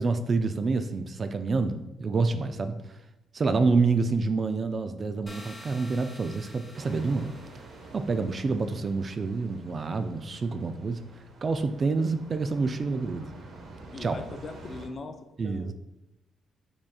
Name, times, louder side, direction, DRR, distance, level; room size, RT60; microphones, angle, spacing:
voice 1, 0.0-2.7 3.3-7.3 7.9-11.0 11.4-13.3 14.0-14.2 15.4-15.7, right 4 dB, 40° right, 9 dB, 0.3 m, -27 dB
sound 1, 5.3-8.1, equal, 10° left, 1.1 m, -48 dB
sound 2, 6.7-14.9, right 3 dB, 70° right, 0.8 m, -48 dB
voice 2, 13.9-15.2 15.4-15.7, left 3 dB, 40° left, 6 dB, 0.5 m, -40 dB
4.9 x 3.5 x 2.3 m, 0.92 s
cardioid pair, 90°, 0 cm